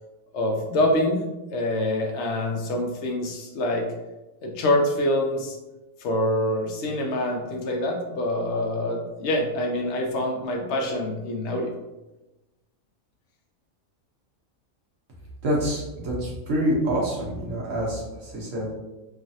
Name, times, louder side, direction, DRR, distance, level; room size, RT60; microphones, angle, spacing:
voice 1, 0.3-1.2 1.5-3.9 4.4-5.6 6.0-11.7, left 1 dB, 65° left, 1 dB, 0.7 m, -25 dB
voice 2, 15.4-18.8, equal, 65° right, -4 dB, 1.1 m, -26 dB
3.1 x 2.4 x 2.6 m, 1.0 s
omnidirectional pair, 1.5 m